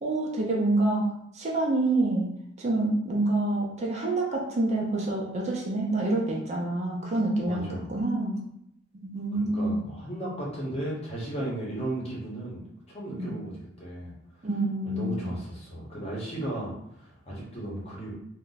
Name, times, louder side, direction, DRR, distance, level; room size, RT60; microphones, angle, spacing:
voice 1, 0.0-1.1 1.3-2.3 2.6-7.6 7.9-8.4 9.0-9.8 13.2-13.4 14.4-15.3, right 2 dB, 35° right, -2 dB, 0.5 m, -27 dB
voice 2, 7.5-7.9 9.3-14.1 14.8-18.1, right 1 dB, 30° left, -5 dB, 0.9 m, -35 dB
2.5 x 2.2 x 3.9 m, 0.75 s
head